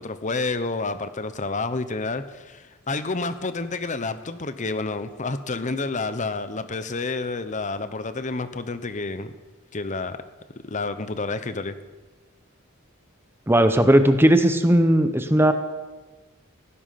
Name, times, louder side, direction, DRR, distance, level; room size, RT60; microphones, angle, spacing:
voice 1, 0.0-9.3 9.7-10.2 10.6-11.8, left 3 dB, 35° left, 12 dB, 0.8 m, -29 dB
voice 2, 13.5-15.5, right 1 dB, 10° right, 8 dB, 0.9 m, -17 dB
17.0 x 10.0 x 5.8 m, 1.3 s
head